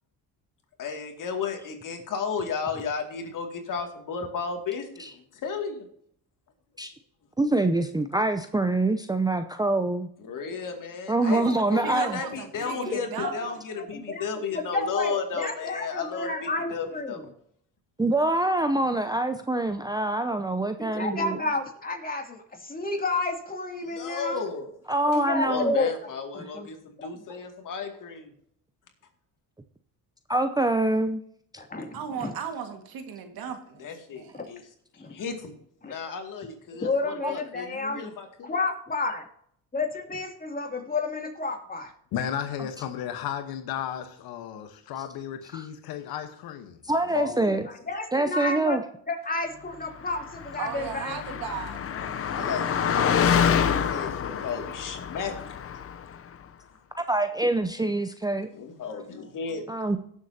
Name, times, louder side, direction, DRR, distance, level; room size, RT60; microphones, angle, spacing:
voice 1, 0.8-5.9 10.2-11.4 11.7-17.3 23.8-24.7 25.5-28.3 33.8-34.6 34.9-35.5 35.8-38.6 52.3-55.4 58.5-59.7, left 5 dB, 60° left, 2.4 m, -34 dB
voice 2, 7.4-10.1 11.1-12.2 18.0-21.4 24.9-25.7 30.3-31.2 37.2-37.3 45.5-45.7 46.8-47.7 48.1-48.8 57.0-58.5 59.7-60.0, right 2 dB, 10° right, 0.6 m, -25 dB
voice 3, 11.2-13.3 31.9-34.4 50.6-51.8 52.3-52.6, right 7 dB, 75° right, 1.9 m, -36 dB
voice 4, 12.9-14.2 14.5-17.2 20.8-24.4 25.1-25.9 26.3-26.7 31.7-32.3 35.0-35.1 35.8-35.9 36.8-38.1 38.4-39.2 39.7-41.9 47.1-48.8 49.1-51.2, left 3 dB, 25° left, 2.7 m, -31 dB
voice 5, 42.1-46.8 47.2-47.6 51.7-54.5, left 9 dB, 80° left, 1.3 m, -36 dB
Car passing by, 50.2-56.1, left 7 dB, 40° left, 0.7 m, -27 dB
17.5 x 7.3 x 2.8 m
cardioid pair, 85°, 36 cm